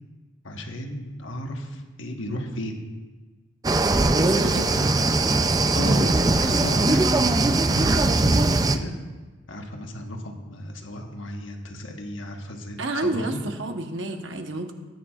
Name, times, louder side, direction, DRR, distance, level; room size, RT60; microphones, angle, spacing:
voice 1, 0.4-2.9 4.5-5.0 5.5-8.9 9.5-13.4, equal, 80° left, 2 dB, 1.3 m, -33 dB
sound 1, 3.6-8.8, right 2 dB, 20° right, 0.4 m, -20 dB
voice 2, 4.1-4.9 5.8-6.1 12.8-14.7, right 2 dB, 70° right, 5 dB, 1.1 m, -30 dB
17.5 x 9.5 x 2.4 m, 1.3 s
head